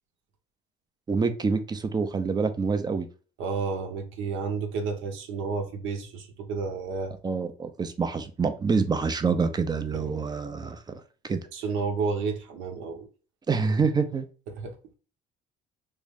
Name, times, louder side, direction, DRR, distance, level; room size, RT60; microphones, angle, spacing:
voice 1, 1.1-3.1 7.2-11.4 13.5-14.3, right 5 dB, 20° right, 0.4 m, -27 dB
voice 2, 3.4-7.2 9.9-10.2 11.5-13.1 14.5-14.8, right 4 dB, 75° right, 0.8 m, -31 dB
3.6 x 2.1 x 3.4 m
cardioid pair, 115°, 20 cm